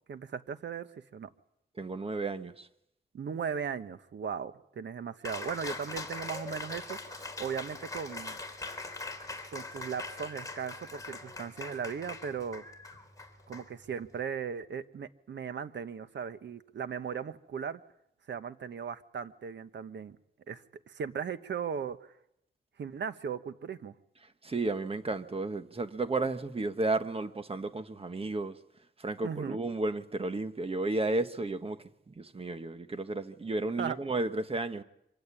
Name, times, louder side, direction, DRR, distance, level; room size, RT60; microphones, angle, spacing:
voice 1, 0.1-0.9 1.1-1.3 3.1-8.4 9.5-12.6 13.5-17.8 18.3-20.2 20.5-22.1 22.8-23.9 29.2-29.6 33.8-34.0, right 7 dB, 75° right, 1.2 m, -37 dB
voice 2, 1.8-2.7 24.4-28.6 29.0-34.8, right 2 dB, 30° right, 1.4 m, -33 dB
Cheering, 5.2-14.2, left 3 dB, 20° left, 4.0 m, -42 dB
25.5 x 16.0 x 9.9 m
wide cardioid pair, 100°, 19 cm